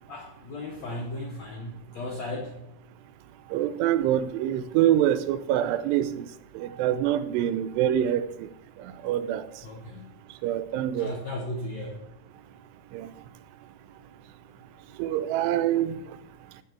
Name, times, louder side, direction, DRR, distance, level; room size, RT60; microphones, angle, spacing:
voice 1, 0.1-2.6 9.6-10.0 10.9-12.0, left 1 dB, 75° left, 0 dB, 1.6 m, -36 dB
voice 2, 3.5-6.3 6.6-8.2 9.0-9.4 10.4-11.1 12.9-13.1 15.0-15.9, right 11 dB, 90° right, 13 dB, 2.8 m, -25 dB
15.5 x 5.3 x 4.5 m, 0.79 s
omnidirectional pair, 4.8 m